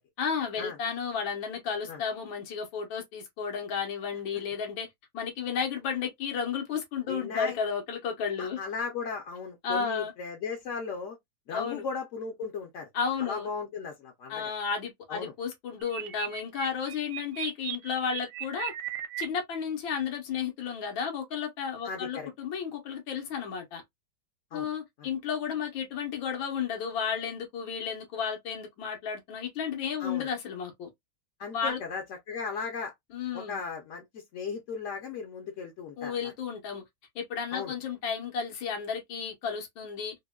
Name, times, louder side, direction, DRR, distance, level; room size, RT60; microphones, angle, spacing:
voice 1, 0.2-4.9 5.1-8.6 9.6-10.1 11.5-11.8 12.9-13.5 14.3-18.7 19.2-23.8 24.5-30.9 31.5-31.8 33.1-33.6 36.0-36.8 37.2-40.2, left 6 dB, 90° left, 1.7 m, -33 dB
voice 2, 7.1-7.6 8.4-11.2 11.5-12.9 13.2-14.4 15.1-15.3 21.8-22.3 24.5-24.7 25.0-25.1 30.0-30.3 31.4-32.9 33.3-36.3 37.5-37.7, left 5 dB, 65° left, 0.7 m, -36 dB
sound 1, 15.8-19.3, right 13 dB, 80° right, 1.2 m, -37 dB
3.7 x 2.1 x 2.2 m
omnidirectional pair, 2.1 m